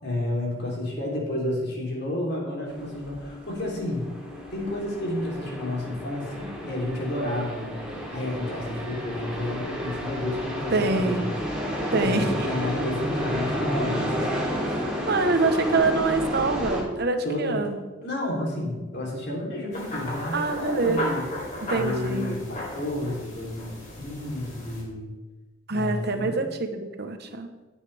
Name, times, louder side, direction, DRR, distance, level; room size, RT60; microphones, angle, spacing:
voice 1, 0.0-4.1 4.5-7.8 8.1-11.3 11.7-14.7 17.2-17.7 18.0-21.2 21.7-25.1 25.7-26.5, left 1 dB, 55° left, -2 dB, 3.4 m, -31 dB
sound 1, 2.6-16.8, equal, 5° right, 3.0 m, -31 dB
voice 2, 10.7-11.3 11.9-12.5 15.1-17.8 20.3-21.0 21.6-22.3 25.7-27.5, right 3 dB, 55° right, 7 dB, 1.0 m, -25 dB
sound 2, 19.7-24.8, left 1 dB, 40° left, 3.4 m, -35 dB
15.5 x 8.3 x 3.4 m, 1.2 s
head